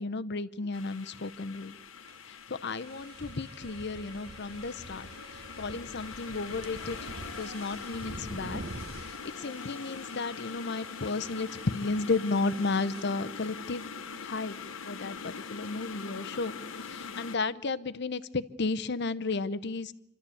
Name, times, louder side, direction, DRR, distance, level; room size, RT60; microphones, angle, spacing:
voice 1, 0.0-1.8 2.5-5.1 5.6-7.0 7.3-8.6 9.0-13.8 14.2-14.6 14.8-16.5 16.9-19.9, left 3 dB, 55° left, 15 dB, 0.7 m, -33 dB
sound 1, 0.7-17.4, left 5 dB, 85° left, 1.2 m, -43 dB
sound 2, 2.1-2.2 2.7-13.0, right 2 dB, 50° right, 1.2 m, -47 dB
27.5 x 13.0 x 8.5 m, 0.84 s
head